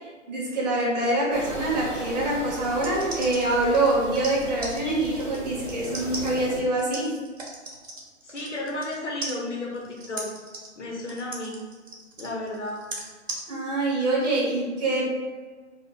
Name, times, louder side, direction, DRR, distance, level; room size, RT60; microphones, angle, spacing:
voice 1, 0.3-7.2 13.5-15.1, right 2 dB, 35° right, -4 dB, 0.8 m, -25 dB
sound 1, 1.3-6.6, left 1 dB, ahead, 0.6 m, -37 dB
sound 2, 2.7-9.0 9.2-13.4, right 2 dB, 80° right, 0.9 m, -38 dB
voice 2, 8.2-10.3 10.8-11.6 12.2-12.8, left 1 dB, 65° left, -2 dB, 1.0 m, -33 dB
2.4 x 2.2 x 3.9 m, 1.4 s
figure-of-eight pair, 130°, 38 cm